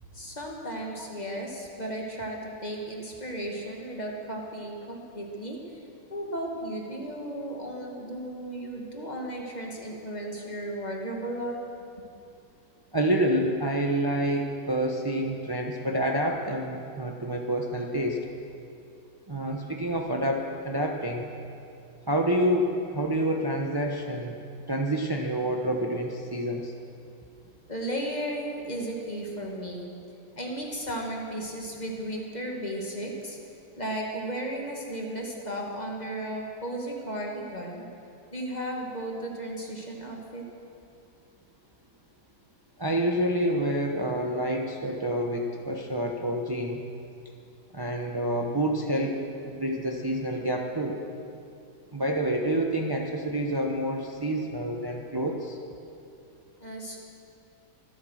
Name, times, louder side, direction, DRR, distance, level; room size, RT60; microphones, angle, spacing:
voice 1, 0.1-5.8 6.1-11.6 27.7-29.9 30.4-33.4 33.8-37.9 38.3-40.4 56.6-57.0, right 1 dB, 20° left, -1 dB, 1.8 m, -35 dB
voice 2, 12.9-18.2 19.3-21.3 22.1-24.4 24.7-26.7 42.8-46.8 47.7-49.2 49.4-51.0 51.9-55.6, right 1 dB, 30° right, 1 dB, 0.4 m, -28 dB
24.5 x 8.4 x 6.4 m, 2.6 s
omnidirectional pair, 2.2 m